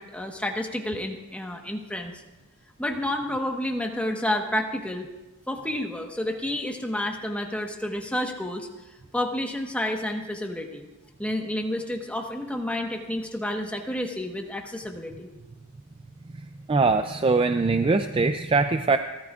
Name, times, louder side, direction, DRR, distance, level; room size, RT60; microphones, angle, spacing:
voice 1, 0.0-2.1 2.8-5.1 5.5-8.7 9.1-10.9 11.2-15.3, left 1 dB, 5° left, 2 dB, 1.2 m, -30 dB
voice 2, 16.7-19.0, right 3 dB, 25° right, 8 dB, 0.4 m, -22 dB
29.5 x 13.5 x 2.4 m, 1.1 s
head